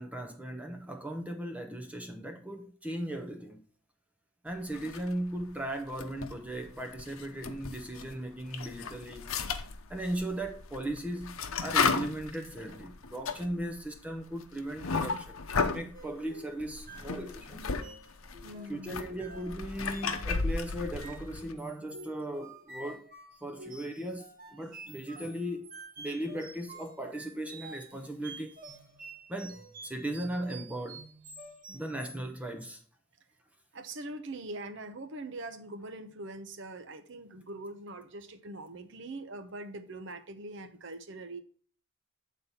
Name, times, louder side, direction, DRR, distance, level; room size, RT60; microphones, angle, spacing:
voice 1, 0.0-3.6 4.4-9.3 9.9-17.6 18.7-23.1 23.4-28.6 29.3-31.0 31.7-32.8, right 1 dB, 5° right, 0.6 m, -37 dB
sound 1, 4.7-5.4 5.8-8.1 8.5-15.9 16.6-17.8 18.1-21.5, left 4 dB, 75° left, 0.8 m, -34 dB
sound 2, 15.9-32.3, right 2 dB, 40° right, 1.1 m, -49 dB
voice 2, 18.4-19.0 33.7-41.4, right 2 dB, 55° right, 0.8 m, -42 dB
8.5 x 4.2 x 5.5 m
head